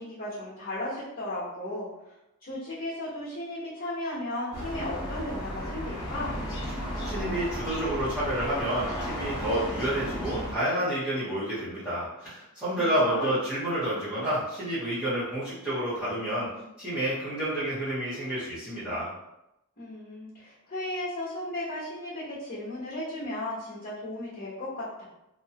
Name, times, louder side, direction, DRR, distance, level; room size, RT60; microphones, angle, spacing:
voice 1, 0.0-2.1 2.4-6.4 12.8-13.4 19.8-25.0, left 1 dB, 40° left, -10 dB, 1.1 m, -35 dB
Traffic busy urban street birds - Auckland New Zealand, 4.5-10.5, equal, 20° left, 1.2 m, -34 dB
voice 2, 7.0-16.5 16.8-19.1, right 1 dB, 5° right, -13 dB, 1.1 m, -29 dB
3.0 x 2.1 x 2.9 m, 0.87 s
head